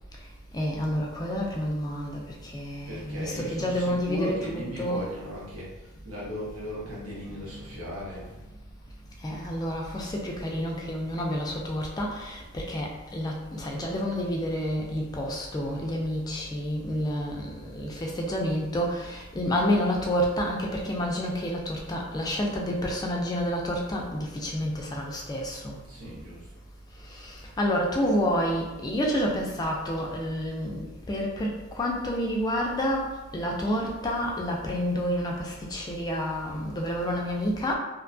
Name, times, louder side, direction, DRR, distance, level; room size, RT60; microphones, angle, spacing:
voice 1, 0.5-2.2 2.5-5.0 7.3-7.4 9.2-25.8 27.6-33.1 33.3-37.7, equal, 20° left, -1 dB, 0.3 m, -29 dB
voice 2, 2.8-8.3 25.8-26.5, equal, 85° right, -5 dB, 1.0 m, -37 dB
2.7 x 2.2 x 2.5 m, 1.1 s
head